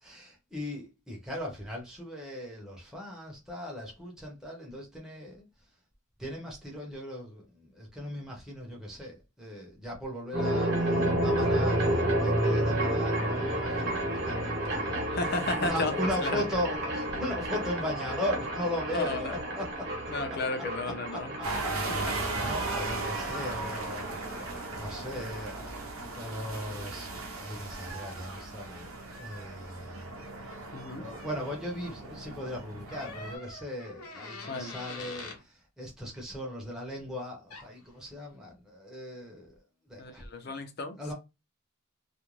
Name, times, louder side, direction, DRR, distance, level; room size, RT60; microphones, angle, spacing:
voice 1, 0.0-5.5 6.2-15.1 15.5-19.9 20.3-21.8 22.1-25.8 26.1-30.1 31.0-39.5 39.8-40.3 41.0-41.1, left 1 dB, 5° right, 0.7 m, -38 dB
sound 1, 10.3-25.3, right 1 dB, 50° right, 1.0 m, -31 dB
voice 2, 15.1-16.4 18.9-19.4 20.1-21.3 22.0-22.1 22.4-22.5 30.7-31.0 34.5-34.7 40.0-41.0, left 2 dB, 45° left, 0.5 m, -34 dB
sound 2, 21.4-33.3, right 3 dB, 75° right, 0.7 m, -37 dB
sound 3, 32.9-35.4 37.5-37.7, left 3 dB, 90° left, 0.8 m, -43 dB
2.4 x 2.1 x 3.1 m
head